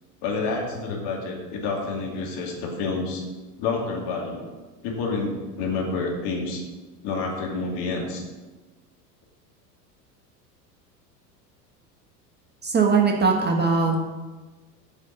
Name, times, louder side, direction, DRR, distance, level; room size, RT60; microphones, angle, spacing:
voice 1, 0.2-3.2 3.6-4.5 4.8-6.6 7.0-8.2, left 3 dB, 55° left, 0 dB, 2.6 m, -28 dB
voice 2, 12.6-14.0, right 4 dB, 20° right, 2 dB, 1.4 m, -20 dB
9.0 x 5.0 x 6.9 m, 1.2 s
hypercardioid pair, 85°, 50 cm